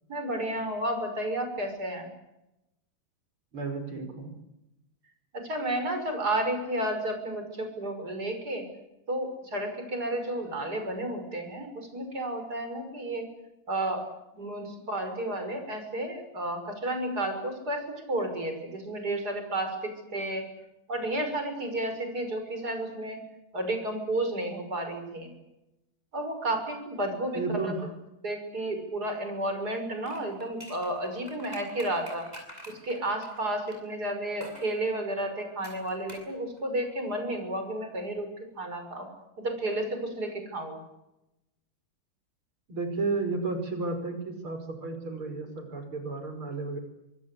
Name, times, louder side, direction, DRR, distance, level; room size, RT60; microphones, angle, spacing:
voice 1, 0.1-2.1 5.4-8.7 9.1-13.3 13.7-14.0 14.3-20.4 20.9-23.2 23.5-25.3 26.1-27.7 28.2-32.3 32.7-38.3 38.6-39.1 39.4-40.8, right 1 dB, 45° right, 6 dB, 6.5 m, -32 dB
voice 2, 3.5-4.3 27.3-27.9 42.7-46.8, right 3 dB, 70° right, 7 dB, 6.1 m, -32 dB
sound 1, 30.0-33.8 34.4-34.7 35.6-36.3 36.6-36.7, equal, 15° right, 8.0 m, -47 dB
25.5 x 24.0 x 8.5 m, 0.90 s
omnidirectional pair, 2.4 m